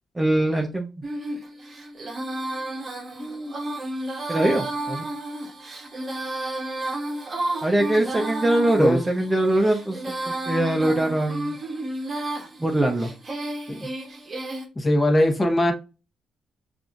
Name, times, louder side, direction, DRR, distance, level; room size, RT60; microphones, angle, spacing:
voice 1, 0.2-0.9 4.3-5.0 7.6-11.6 12.6-13.1, right 1 dB, 15° right, 0.7 m, -22 dB
Female singing, 1.0-14.7, right 1 dB, 35° right, 1.0 m, -32 dB
voice 2, 3.2-3.5 8.8-9.0 13.7-13.9 14.8-15.7, left 1 dB, 20° left, 1.1 m, -21 dB
5.4 x 2.6 x 2.4 m
cardioid pair, 90°, 0 cm